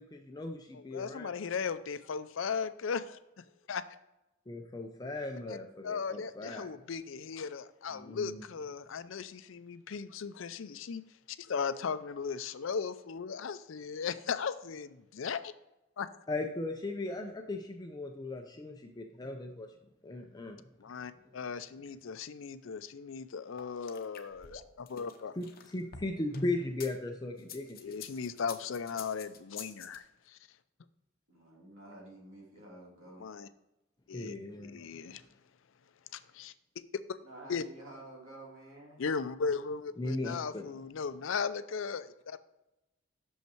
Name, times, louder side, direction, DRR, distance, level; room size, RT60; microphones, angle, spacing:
voice 1, 0.0-1.3 4.5-6.7 7.9-8.4 16.3-19.7 20.0-20.6 25.4-28.0 34.1-34.8 40.0-40.7, left 2 dB, 20° left, 3 dB, 0.5 m, -37 dB
voice 2, 0.7-3.8 5.5-5.6 5.8-11.0 11.3-15.5 16.0-16.1 20.8-25.3 27.8-30.4 33.2-33.5 34.1-34.4 34.6-35.2 36.1-36.5 37.5-37.6 39.0-42.4, left 5 dB, 70° left, 13 dB, 0.5 m, -37 dB
sound 1, 23.6-26.9 27.4-30.0, left 4 dB, 45° left, 0.8 m, -45 dB
voice 3, 31.3-33.3 37.2-39.0, right 2 dB, 90° right, -3 dB, 2.9 m, -50 dB
6.5 x 5.6 x 4.5 m, 0.93 s
head